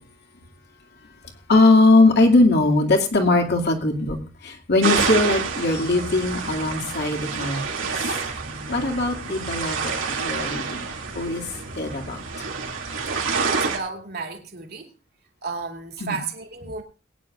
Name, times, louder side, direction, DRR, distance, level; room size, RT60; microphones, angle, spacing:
voice 1, 1.5-4.2 4.4-8.0 8.7-10.8 11.1-11.4 11.7-12.2 16.0-16.2, left 2 dB, 60° left, 3 dB, 2.4 m, -20 dB
sound 1, 4.8-13.8, right 5 dB, 85° right, 2.6 m, -28 dB
voice 2, 8.4-9.1 13.1-14.9 15.4-16.8, right 4 dB, 55° right, 4 dB, 2.6 m, -34 dB
22.0 x 9.7 x 2.5 m, 0.33 s
head